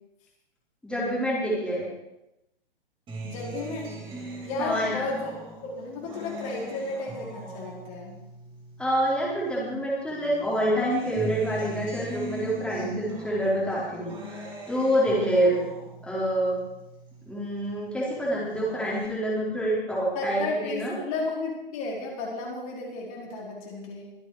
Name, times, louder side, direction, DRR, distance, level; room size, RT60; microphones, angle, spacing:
voice 1, 0.8-1.9 4.6-5.0 8.8-15.6 16.0-16.6 17.3-20.9, equal, 5° left, -6 dB, 4.1 m, -27 dB
Acoustic guitar, 3.1-9.7 10.1-17.7 18.1-19.1, right 2 dB, 15° right, 4.5 m, -41 dB
voice 2, 3.2-3.9 4.4-5.3 5.6-8.1 20.1-24.1, left 2 dB, 35° left, -2 dB, 4.4 m, -33 dB
23.5 x 8.0 x 4.9 m, 0.90 s
figure-of-eight pair, 120°, 30 cm